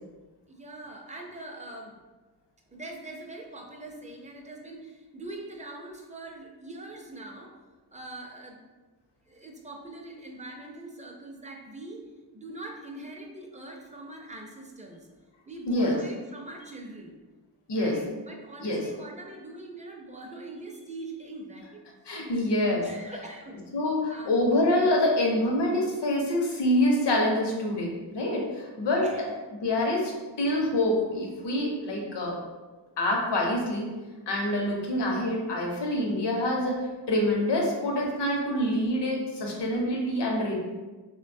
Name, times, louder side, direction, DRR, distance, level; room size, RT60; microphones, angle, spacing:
voice 1, 0.5-2.0 2.7-7.5 7.9-8.6 9.3-12.0 12.3-15.1 15.5-17.2 17.7-21.8 22.8-23.6 24.1-24.3 29.0-29.3, right 2 dB, 20° right, 0 dB, 0.4 m, -42 dB
voice 2, 15.7-16.0 17.7-18.0 18.6-18.8 22.1-22.8 23.7-29.0 29.6-32.4 33.0-33.9 34.3-40.6, left 1 dB, 75° left, -1 dB, 0.7 m, -26 dB
3.7 x 2.2 x 2.5 m, 1.2 s
wide cardioid pair, 110°, 42 cm